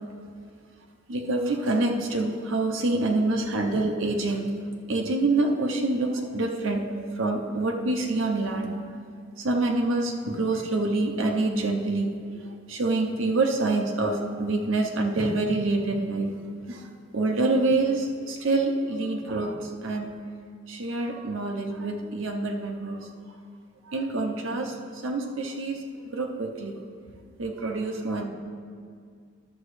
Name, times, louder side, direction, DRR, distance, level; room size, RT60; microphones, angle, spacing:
voice 1, 1.1-4.5 4.9-8.9 9.4-16.4 16.7-20.1 20.7-23.1 23.9-24.7 25.0-25.8 26.1-26.8 27.4-28.2, right 2 dB, 85° right, 2 dB, 0.8 m, -26 dB
11.5 x 7.1 x 3.2 m, 2.2 s
head